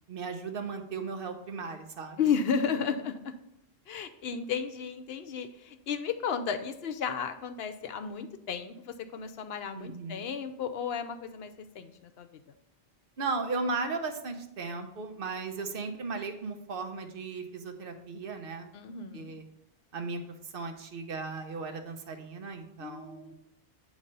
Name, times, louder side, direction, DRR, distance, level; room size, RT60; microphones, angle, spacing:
voice 1, 0.1-2.2 9.7-10.3 13.2-18.7 19.1-19.4 19.9-20.2 20.5-23.3, right 4 dB, 60° right, 6 dB, 1.0 m, -36 dB
voice 2, 2.2-3.3 3.9-12.4 18.7-19.3 22.8-23.3, left 6 dB, 75° left, 8 dB, 0.8 m, -33 dB
8.6 x 3.2 x 5.3 m, 0.80 s
omnidirectional pair, 1.1 m